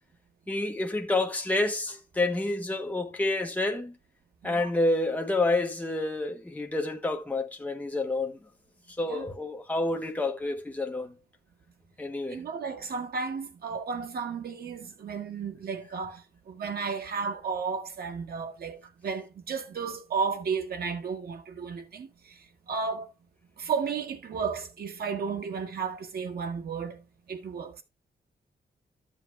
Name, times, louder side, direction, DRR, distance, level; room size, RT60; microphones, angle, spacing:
voice 1, 0.5-4.0 4.4-8.4 9.0-11.1 12.0-12.4, left 2 dB, 10° left, 1.2 m, -29 dB
voice 2, 12.3-22.1 22.7-23.1 23.6-27.0 27.3-27.8, right 5 dB, 70° right, 1.5 m, -33 dB
13.0 x 8.0 x 2.2 m
wide cardioid pair, 175°, 16 cm